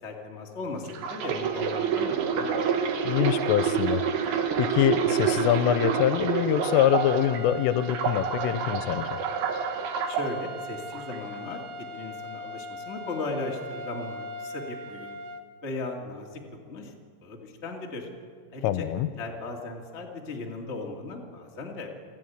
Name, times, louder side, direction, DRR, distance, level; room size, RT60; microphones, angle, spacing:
voice 1, 0.0-2.6 10.1-11.6 11.9-15.2 15.6-16.4 16.7-16.9 17.2-18.1 18.5-18.8 19.1-21.9, left 2 dB, 40° left, 0 dB, 0.9 m, -37 dB
sound 1, 0.9-7.4 7.8-10.3 10.9-11.2, right 7 dB, 65° right, 2.7 m, -28 dB
voice 2, 3.0-9.1 18.6-19.1, left 11 dB, 85° left, 12 dB, 3.3 m, -25 dB
sound 2, 6.5-15.4, left 1 dB, 90° right, 3.9 m, -40 dB
28.0 x 10.5 x 9.3 m, 2.3 s
omnidirectional pair, 5.8 m